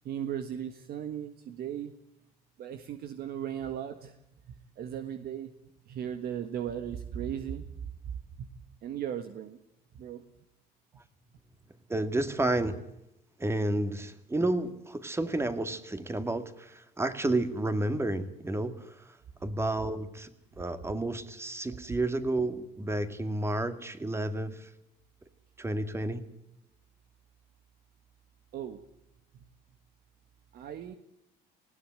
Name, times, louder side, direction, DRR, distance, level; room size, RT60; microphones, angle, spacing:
voice 1, 0.0-1.9 2.6-4.1 4.5-5.5 5.9-7.6 8.4-8.5 8.8-9.6 9.9-10.2 12.2-12.3 28.5-28.8 30.5-30.9, right 9 dB, 65° right, 8 dB, 1.6 m, -37 dB
voice 2, 11.9-12.8 13.4-18.7 19.4-20.3 20.6-24.7 25.6-26.2, right 2 dB, 15° right, 10 dB, 2.1 m, -31 dB
20.0 x 16.5 x 9.0 m, 0.85 s
cardioid pair, 110°, 17 cm